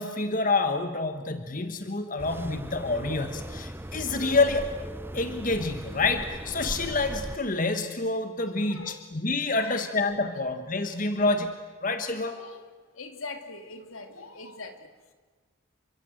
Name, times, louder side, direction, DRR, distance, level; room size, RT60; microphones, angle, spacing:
voice 1, 0.0-4.7 5.1-11.5 11.8-12.4, left 3 dB, 40° left, 8 dB, 1.3 m, -27 dB
sound 1, 2.2-7.4, right 1 dB, 10° right, 0.8 m, -38 dB
voice 2, 8.5-9.0 9.6-9.8 11.1-11.2 12.2-12.6 12.9-14.9, left 3 dB, 75° left, 7 dB, 3.0 m, -42 dB
29.0 x 25.0 x 7.9 m, 1.4 s
head